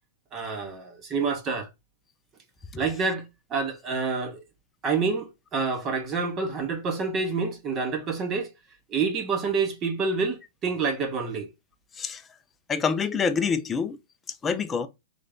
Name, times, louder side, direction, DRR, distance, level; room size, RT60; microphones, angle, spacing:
voice 1, 0.3-1.7 2.8-3.2 3.5-4.4 4.8-8.5 8.9-11.5, right 4 dB, 25° right, 0.8 m, -28 dB
voice 2, 12.7-14.0 14.4-14.9, left 5 dB, 15° left, 0.4 m, -26 dB
3.4 x 2.6 x 3.5 m
hypercardioid pair, 150°, 0 cm